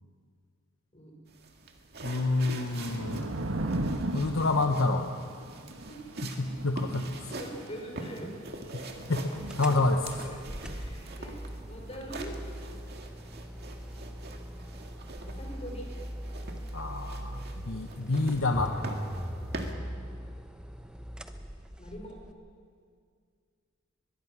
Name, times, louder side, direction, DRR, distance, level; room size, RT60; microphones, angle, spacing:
sound 1, 1.3-19.7, right 2 dB, 55° right, 2.1 m, -45 dB
voice 1, 2.0-3.3 4.1-5.1 6.2-7.3 8.7-8.8 9.1-10.1 16.7-18.8, left 2 dB, 75° left, 5 dB, 1.0 m, -28 dB
Thunder / Rain, 2.1-10.5, right 1 dB, 85° right, 1.4 m, -38 dB
voice 2, 7.3-8.3 8.7-8.9 9.6-9.7 10.2-10.4 10.7-11.4 11.7-12.3 12.8-12.9 15.3-15.9 21.8-22.2, equal, 30° left, 0 dB, 4.9 m, -44 dB
sound 2, 9.5-22.3, equal, 5° right, 0.9 m, -40 dB
22.5 x 22.0 x 6.1 m, 2.1 s
head